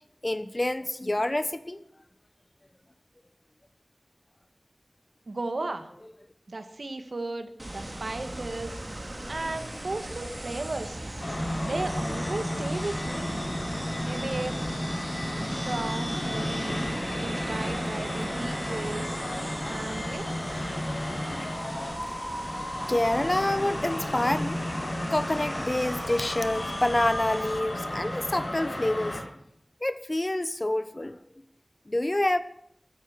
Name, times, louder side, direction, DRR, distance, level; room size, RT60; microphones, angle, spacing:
voice 1, 0.2-1.8 19.6-19.8 20.2-20.6 21.3-21.5 22.9-24.6 25.1-29.2 29.8-31.2 31.9-32.4, left 1 dB, 35° left, 12 dB, 1.3 m, -27 dB
voice 2, 5.3-5.9 6.5-8.8 9.3-11.0 11.6-13.4 14.0-14.6 15.6-16.8 17.2-19.2 19.7-20.3, right 2 dB, 85° right, 8 dB, 2.0 m, -35 dB
sound 1, 7.6-27.6, right 1 dB, 40° right, 2.7 m, -39 dB
sound 2, 11.2-29.2, left 1 dB, 85° left, 5.9 m, -33 dB
15.5 x 14.0 x 6.0 m, 0.73 s
wide cardioid pair, 50°, 0 cm